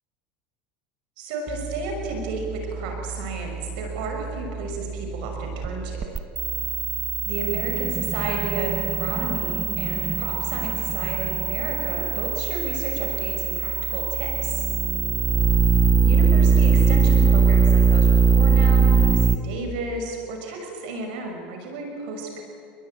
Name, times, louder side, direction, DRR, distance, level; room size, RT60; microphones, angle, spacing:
voice 1, 1.2-6.2 7.2-14.7 16.0-22.4, right 3 dB, 75° right, 3 dB, 6.0 m, -32 dB
sound 1, 1.5-19.4, right 5 dB, 25° right, 1.2 m, -22 dB
28.5 x 21.5 x 9.1 m, 2.4 s
supercardioid pair, 120°, 5 cm